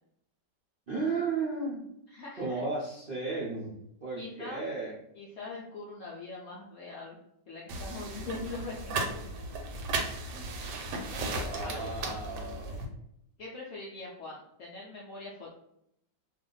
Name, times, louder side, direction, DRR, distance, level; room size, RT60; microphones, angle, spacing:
voice 1, 0.9-1.8 2.4-4.9 11.2-12.8, right 3 dB, 55° right, -7 dB, 0.6 m, -34 dB
voice 2, 2.1-2.6 4.2-4.6 5.1-7.2 7.5-9.3 10.3-10.5 11.6-11.9 13.4-15.5, left 3 dB, 70° left, -4 dB, 0.7 m, -42 dB
sound 1, 7.7-12.9, right 3 dB, 85° right, 1.2 m, -35 dB
2.7 x 2.5 x 3.8 m, 0.76 s
omnidirectional pair, 1.9 m